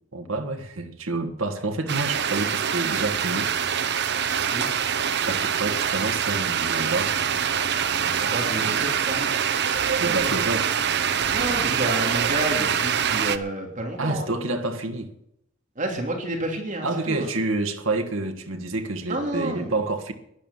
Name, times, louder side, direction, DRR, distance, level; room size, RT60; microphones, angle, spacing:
voice 1, 0.1-3.5 5.2-7.1 10.0-10.7 14.0-15.1 16.8-20.1, right 2 dB, 80° right, 1.6 m, -28 dB
sound 1, 1.9-13.4, right 8 dB, 60° right, 0.9 m, -24 dB
voice 2, 8.3-9.3 10.0-10.4 11.3-14.3 15.8-17.3 19.1-19.7, right 1 dB, 40° right, 2.9 m, -30 dB
12.0 x 10.5 x 7.2 m
head